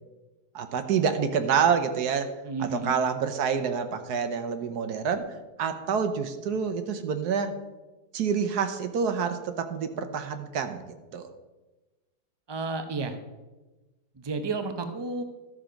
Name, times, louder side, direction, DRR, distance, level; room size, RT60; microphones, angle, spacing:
voice 1, 0.5-2.3 2.6-5.2 5.6-7.5 8.1-10.8 11.1-11.3, right 6 dB, 75° right, 8 dB, 1.4 m, -27 dB
voice 2, 2.4-3.0 12.5-13.2 14.2-15.2, right 3 dB, 30° right, 7 dB, 0.5 m, -31 dB
13.0 x 6.4 x 5.1 m, 1.2 s
omnidirectional pair, 1.7 m